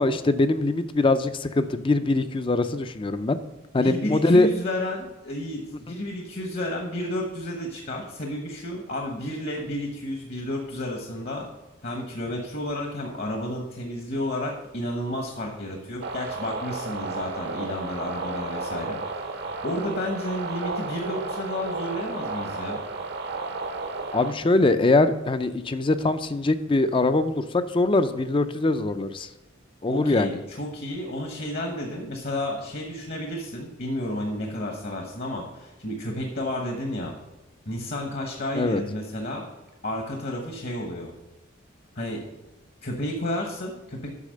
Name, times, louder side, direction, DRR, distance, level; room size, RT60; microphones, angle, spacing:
voice 1, 0.0-3.4 3.7-4.5 24.1-29.3 29.8-30.3 38.6-38.8, left 2 dB, 25° left, 11 dB, 0.4 m, -22 dB
voice 2, 3.8-5.6 5.9-11.5 11.8-19.2 19.6-22.8 29.9-37.1 37.7-39.5 39.8-41.1 41.9-42.2 42.8-44.1, left 1 dB, 50° left, 2 dB, 1.1 m, -31 dB
sound 1, 16.0-24.3, right 3 dB, 55° right, 0.7 m, -33 dB
8.4 x 5.8 x 6.5 m, 1.0 s
head